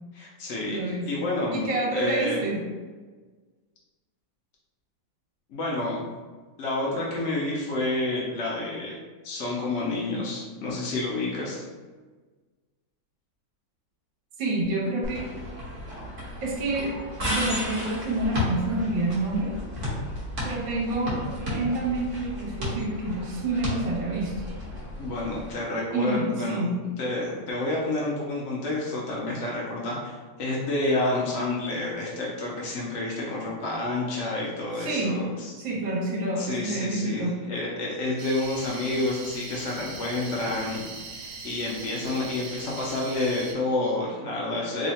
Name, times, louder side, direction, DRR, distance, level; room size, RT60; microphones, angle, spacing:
voice 1, 0.1-0.8 1.1-1.7 1.9-2.4 5.5-6.1 6.6-9.0 9.2-11.6 25.0-26.6 27.0-35.5 36.4-40.8 41.2-44.9, left 2 dB, 85° left, -4 dB, 0.6 m, -29 dB
voice 2, 0.7-1.1 1.5-2.7 14.4-15.3 16.4-19.6 20.4-24.4 25.9-26.8 34.8-35.2 35.6-37.4, right 2 dB, 70° right, -3 dB, 1.6 m, -28 dB
sound 1, 15.0-25.5, left 1 dB, 45° right, 1.2 m, -33 dB
sound 2, 38.2-43.5, right 4 dB, 85° right, 0.8 m, -40 dB
3.5 x 2.1 x 4.0 m, 1.4 s
omnidirectional pair, 2.2 m